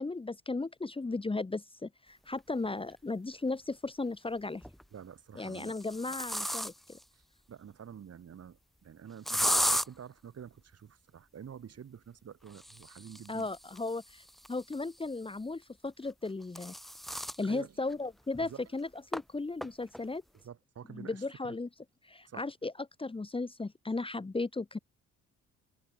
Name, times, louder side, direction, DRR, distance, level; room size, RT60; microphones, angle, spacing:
voice 1, 0.0-4.6 5.3-7.0 13.3-16.7 17.1-20.2 20.9-21.7 22.0-24.8, left 3 dB, 20° left, 1.5 m, -36 dB
sound 1, 2.9-3.0 4.4-4.8 5.4-7.0 9.3-9.9 12.5-15.1 16.1-17.4 17.9-18.0 18.3-18.4 19.1-19.2 19.6-20.0, equal, ahead, 0.6 m, -35 dB
voice 2, 4.9-5.8 7.1-7.2 7.5-13.5 17.4-17.8 18.4-18.6 20.4-21.5 22.3-22.5, right 8 dB, 55° right, 6.7 m, -48 dB
cardioid pair, 90°, 30 cm